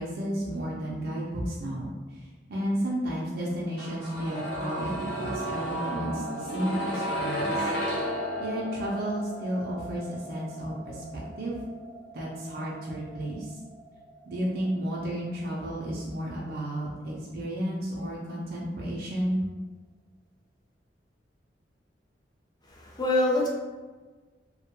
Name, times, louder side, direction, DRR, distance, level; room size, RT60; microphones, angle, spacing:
voice 1, 0.0-1.9 2.5-7.7 8.4-11.6 12.1-13.6 14.3-19.4, right 1 dB, 55° right, -5 dB, 0.4 m, -32 dB
sound 1, 3.8-15.6 15.9-16.0, equal, 90° left, 0.6 m, -34 dB
voice 2, 22.6-23.5, left 2 dB, 25° left, -3 dB, 0.5 m, -25 dB
2.2 x 2.1 x 2.8 m, 1.3 s
head